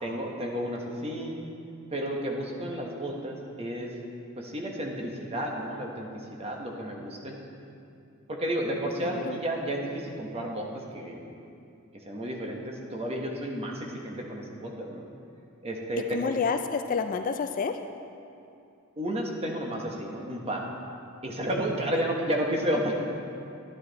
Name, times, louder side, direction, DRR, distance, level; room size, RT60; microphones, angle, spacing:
voice 1, 0.0-1.4 1.9-3.9 4.4-6.1 6.4-7.4 8.3-10.7 10.9-11.2 12.0-15.0 15.6-16.3 19.0-20.6 21.2-23.0, equal, 30° right, 0 dB, 1.2 m, -32 dB
voice 2, 9.0-9.4 16.1-17.8, left 5 dB, 40° left, 7 dB, 0.3 m, -29 dB
11.5 x 9.7 x 4.1 m, 2.6 s
head